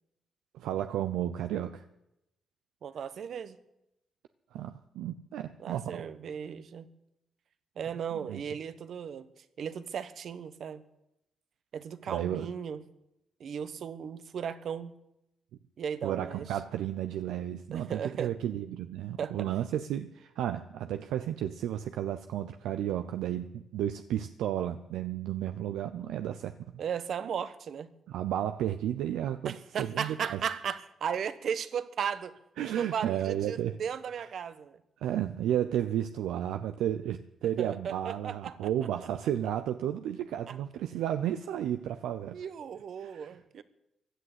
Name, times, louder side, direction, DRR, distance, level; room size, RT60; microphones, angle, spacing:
voice 1, 0.5-1.8 4.5-6.0 8.1-8.4 12.1-12.5 16.0-26.5 28.1-30.4 32.6-33.8 34.2-34.3 35.0-42.4 43.0-43.4, right 11 dB, 90° right, 8 dB, 0.5 m, -33 dB
voice 2, 2.8-3.6 5.6-6.9 7.8-10.8 11.7-12.8 13.4-14.9 15.8-16.4 17.7-18.3 19.2-19.5 26.8-27.9 29.4-32.4 32.8-34.8 37.6-38.5 40.5-40.6 42.3-43.6, right 7 dB, 70° right, 13 dB, 1.1 m, -36 dB
16.0 x 10.0 x 8.1 m, 0.88 s
supercardioid pair, 55°, 0 cm